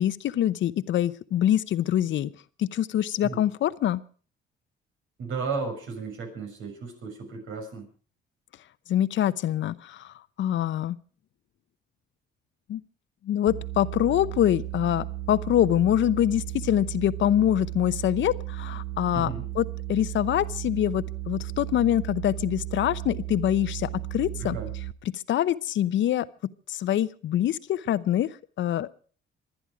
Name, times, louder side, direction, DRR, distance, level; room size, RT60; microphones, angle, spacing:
voice 1, 0.0-2.3 2.6-4.0 8.9-11.0 12.7-12.8 13.2-24.6 25.0-28.9, left 11 dB, 70° left, 16 dB, 0.8 m, -25 dB
voice 2, 5.2-7.9 19.1-19.5 24.4-24.7, right 4 dB, 85° right, 4 dB, 6.4 m, -34 dB
sound 1, 13.5-24.9, right 16 dB, 60° right, 1.1 m, -35 dB
26.0 x 10.0 x 4.8 m, 0.42 s
cardioid pair, 90°, 20 cm